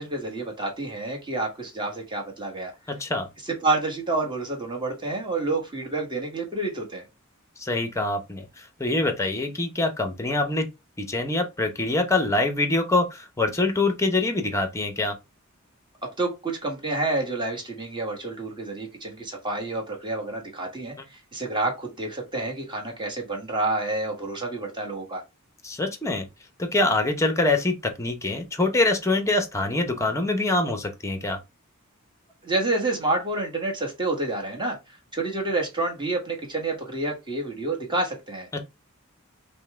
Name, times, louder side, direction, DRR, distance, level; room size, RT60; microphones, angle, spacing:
voice 1, 0.0-2.7 3.4-7.0 16.2-25.2 32.4-38.6, right 2 dB, 20° right, 1.3 m, -29 dB
voice 2, 2.9-3.3 7.6-10.7 11.0-15.2 25.6-26.3 26.6-31.4 38.5-38.6, left 2 dB, 15° left, 0.7 m, -24 dB
5.4 x 2.2 x 3.4 m
head